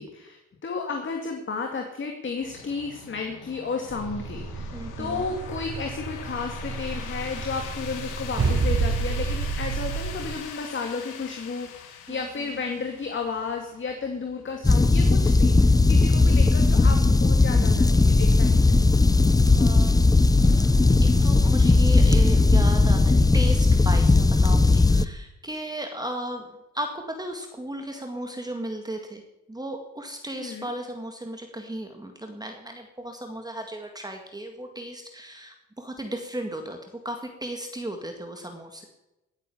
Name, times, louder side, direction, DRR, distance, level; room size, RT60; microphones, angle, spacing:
voice 1, 0.0-18.8 30.3-30.7, left 4 dB, 40° left, 3 dB, 2.3 m, -33 dB
sound 1, 2.4-21.0, left 7 dB, 90° left, 2.6 m, -44 dB
sound 2, 3.9-10.4, right 4 dB, 45° right, 4.2 m, -30 dB
voice 2, 4.7-5.2 12.1-12.2 19.5-20.0 20.5-23.0 23.3-26.4 26.7-29.2 29.5-36.8 37.0-38.9, right 1 dB, 15° right, 4 dB, 2.0 m, -35 dB
sound 3, 14.6-25.1, left 3 dB, 10° left, 0.7 m, -18 dB
18.0 x 8.2 x 7.1 m, 0.96 s
cardioid pair, 90°, 30 cm